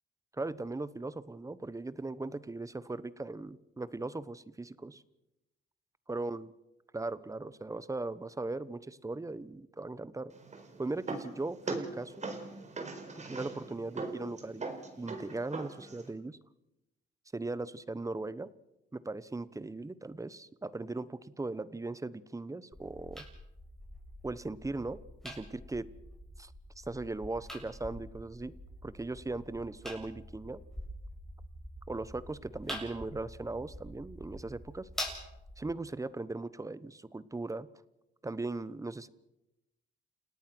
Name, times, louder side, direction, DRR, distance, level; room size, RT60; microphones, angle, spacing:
voice 1, 0.3-5.0 6.1-6.5 6.9-10.3 10.8-12.1 13.2-14.7 15.0-16.4 17.3-18.5 18.9-23.2 24.2-25.9 26.4-28.5 28.8-30.6 31.9-34.9 35.6-37.7 38.2-39.1, right 2 dB, 15° right, 17 dB, 1.0 m, -38 dB
sound 1, 10.3-16.1, right 3 dB, 35° right, 4.6 m, -41 dB
sound 2, 22.7-35.7, equal, ahead, 7.5 m, -46 dB
29.5 x 18.0 x 6.2 m, 0.91 s
cardioid pair, 90°, 20 cm